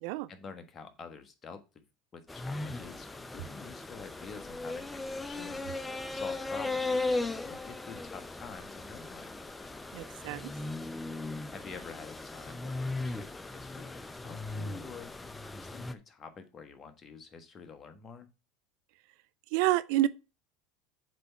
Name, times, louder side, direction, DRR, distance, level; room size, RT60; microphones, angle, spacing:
voice 1, 0.3-1.8 2.1-5.8 6.1-7.0 7.4-9.3 11.5-15.1 15.5-18.3, left 5 dB, 35° left, 1.4 m, -48 dB
sound 1, 2.3-15.9, left 2 dB, 15° left, 0.7 m, -37 dB
voice 2, 9.9-10.5 19.5-20.1, right 15 dB, 70° right, 0.4 m, -28 dB
7.6 x 3.6 x 5.7 m
hypercardioid pair, 90°, 0 cm